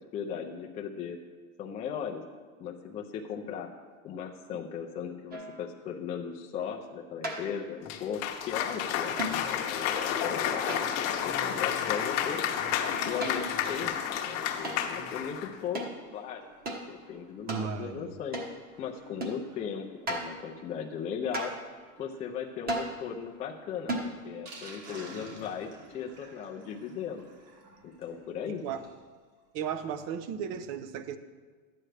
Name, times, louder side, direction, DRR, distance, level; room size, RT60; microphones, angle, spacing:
voice 1, 0.1-1.2 1.6-2.2 2.6-3.7 4.0-12.4 13.1-18.4 18.8-21.6 22.0-27.3 27.8-28.6, left 7 dB, 20° left, 1 dB, 0.3 m, -37 dB
sound 1, 5.3-5.7 7.2-7.7 9.2-9.5 10.7-11.2 12.9-13.6 14.6-14.9 15.8-16.0 16.7-16.8 17.5-17.7 18.3-18.6 19.2-19.4 20.1-20.4 21.3-21.7 22.7-23.0 23.9-24.2, right 1 dB, 25° right, 1.2 m, -35 dB
Cheering / Applause, 7.9-15.5, left 9 dB, 40° left, 0.8 m, -31 dB
Sink (filling or washing), 11.1-29.0 29.4-29.5 29.7-29.8 30.1-30.2, right 3 dB, 65° right, 3.0 m, -54 dB
voice 2, 17.5-18.1 28.6-28.8 29.5-31.2, right 7 dB, 40° right, 12 dB, 0.6 m, -35 dB
12.0 x 8.9 x 3.3 m, 1.5 s
supercardioid pair, 145°, 40 cm